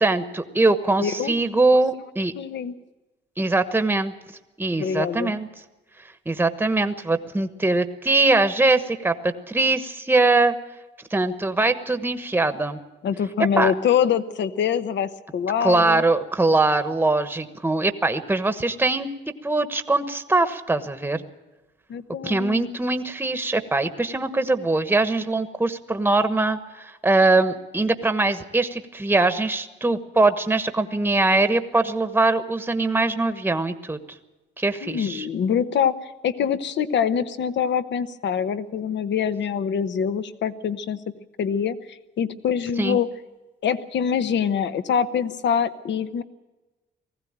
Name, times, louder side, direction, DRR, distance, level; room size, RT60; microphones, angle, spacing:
voice 1, 0.0-2.3 3.4-4.1 4.6-5.5 6.3-10.5 11.1-12.8 13.6-13.7 15.6-19.1 19.4-21.2 22.2-34.0 34.6-35.3 42.8-43.0, right 2 dB, 10° right, 9 dB, 1.2 m, -22 dB
voice 2, 1.0-1.3 2.4-2.7 4.8-5.3 13.0-16.0 21.9-22.7 34.8-36.0 36.2-41.0 41.4-43.1 43.6-46.2, left 8 dB, 65° left, 12 dB, 1.1 m, -24 dB
19.5 x 15.5 x 8.8 m, 1.1 s
cardioid pair, 90°, 20 cm